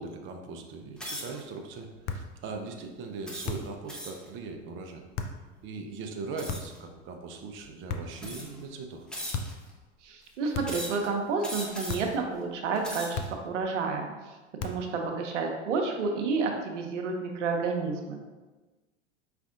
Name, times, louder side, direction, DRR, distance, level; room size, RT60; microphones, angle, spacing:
voice 1, 0.0-5.0 5.6-9.1, right 4 dB, 35° right, 3 dB, 0.6 m, -40 dB
sound 1, 1.0-1.4 2.1-2.3 3.3-4.3 6.4-6.8 7.6-7.7 8.2-8.6 9.1-9.7 10.6-11.1 11.4-12.1 12.6-13.3, equal, ahead, 0.8 m, -39 dB
sound 2, 2.0-2.4 3.4-3.8 5.1-5.4 6.5-6.9 7.9-8.3 9.3-9.7 10.5-10.9 11.9-12.2 13.1-13.6 14.6-15.0, left 4 dB, 40° left, 0.5 m, -36 dB
voice 2, 10.0-14.1 14.6-18.2, right 4 dB, 80° right, 3 dB, 0.7 m, -30 dB
5.0 x 3.3 x 2.5 m, 1.2 s
hypercardioid pair, 90°, 36 cm